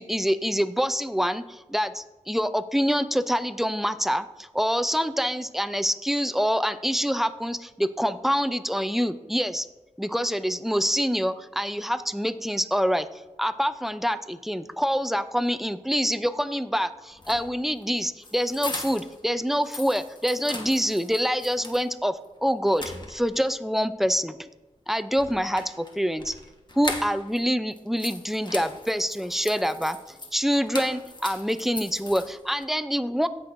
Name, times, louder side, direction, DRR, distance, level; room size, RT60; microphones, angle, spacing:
voice 1, 0.0-9.7 10.0-24.5 24.9-26.3 26.8-30.0 30.3-33.3, equal, ahead, 12 dB, 0.5 m, -26 dB
sound 1, 17.1-19.2 19.5-21.9 22.2-22.3 22.7-23.5 25.1-27.4 27.7-32.6, left 2 dB, 35° left, 1.2 m, -39 dB
17.0 x 6.1 x 2.6 m, 1.2 s
wide cardioid pair, 75°, 13 cm